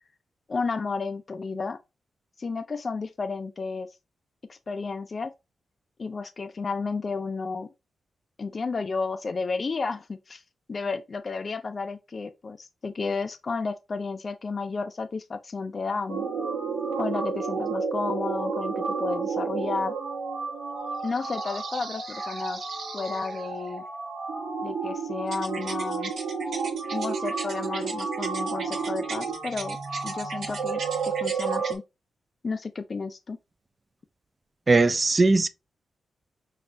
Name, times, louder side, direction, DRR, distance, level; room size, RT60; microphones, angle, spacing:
voice 1, 0.5-1.8 2.4-3.9 4.5-5.3 6.0-7.7 8.4-10.4 10.7-16.3 17.0-19.9 21.0-22.6 22.9-23.8 24.6-26.1 26.9-29.8 30.0-31.8 32.4-33.4, left 4 dB, 40° left, 0.4 m, -32 dB
sound 1, 16.1-31.8, right 5 dB, 80° right, 1.3 m, -31 dB
voice 2, 34.7-35.5, right 3 dB, 30° right, 0.4 m, -19 dB
6.0 x 2.4 x 2.6 m
wide cardioid pair, 110°, 0 cm